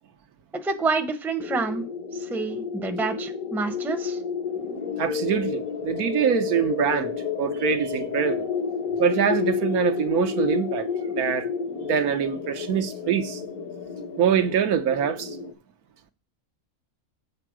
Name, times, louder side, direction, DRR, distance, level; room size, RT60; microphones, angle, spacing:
voice 1, 0.6-1.9 2.1-4.2, right 4 dB, ahead, 0.7 m, -28 dB
sound 1, 1.4-15.5, left 6 dB, 70° left, 1.6 m, -30 dB
voice 2, 5.0-8.5 9.0-11.5 11.8-13.4 14.2-15.4, right 8 dB, 80° right, 1.3 m, -24 dB
7.7 x 4.5 x 6.1 m
omnidirectional pair, 1.6 m